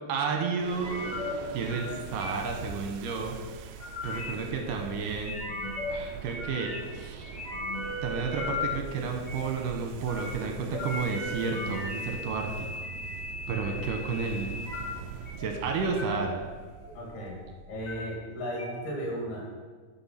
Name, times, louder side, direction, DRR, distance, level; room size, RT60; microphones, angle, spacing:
voice 1, 0.1-1.1 1.5-3.4 4.0-5.3 5.9-7.3 8.0-12.7 13.5-14.5 15.4-16.4, right 5 dB, 70° right, 3 dB, 2.4 m, -31 dB
sound 1, 0.6-18.0, right 7 dB, 90° right, 1.9 m, -43 dB
sound 2, 0.8-1.3 1.7-1.9 2.2-2.6 3.5-4.3 5.2-5.9 6.3-6.9 7.2-8.6 9.3-9.4 10.0-10.3 10.7-14.8 15.3-15.5 16.0-16.3 16.6-17.4 17.7-17.9 18.6-18.7, left 2 dB, 30° left, 3.2 m, -37 dB
voice 2, 16.9-17.4 17.7-19.5, equal, 70° left, -2 dB, 4.5 m, -35 dB
12.5 x 6.2 x 5.8 m, 1.5 s
omnidirectional pair, 4.7 m